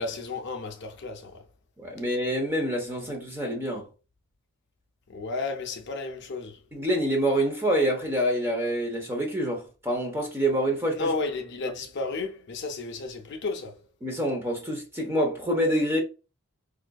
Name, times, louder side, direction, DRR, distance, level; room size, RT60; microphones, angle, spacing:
voice 1, 0.0-1.4 5.1-6.6 11.0-13.8, left 3 dB, 50° left, 0.6 m, -32 dB
voice 2, 1.8-3.9 6.7-11.1 14.0-16.0, equal, 10° right, 0.8 m, -26 dB
5.0 x 2.5 x 2.3 m
head